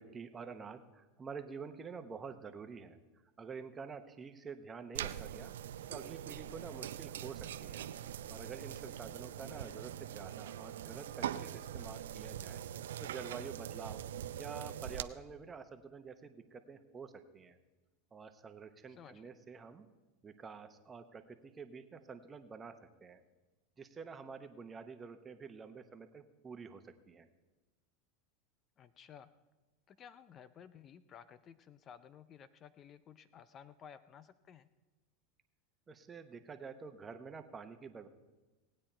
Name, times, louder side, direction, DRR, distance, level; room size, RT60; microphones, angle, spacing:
voice 1, 0.0-3.0 3.4-5.5 5.9-7.9 8.3-12.6 13.0-14.0 14.4-17.6 18.1-19.9 20.2-23.2 23.8-27.3 35.9-38.1, right 5 dB, 20° right, 8 dB, 1.0 m, -48 dB
sound 1, 4.9-15.0, right 10 dB, 85° right, 0.4 m, -43 dB
voice 2, 18.9-19.2 28.8-29.3 29.9-34.7, left 8 dB, 35° left, 15 dB, 0.5 m, -55 dB
18.0 x 8.8 x 4.4 m, 1.2 s
supercardioid pair, 115°, 0 cm